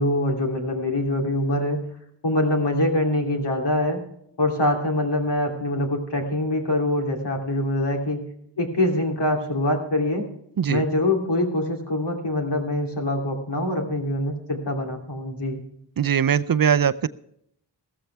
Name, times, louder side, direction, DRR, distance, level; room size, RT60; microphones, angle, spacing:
voice 1, 0.0-1.8 2.2-4.0 4.4-8.2 8.6-10.3 10.7-15.6, left 1 dB, 70° left, 1 dB, 3.1 m, -24 dB
voice 2, 16.0-17.1, right 8 dB, 55° right, 15 dB, 0.6 m, -21 dB
15.0 x 14.0 x 3.4 m, 0.72 s
wide cardioid pair, 75°, 42 cm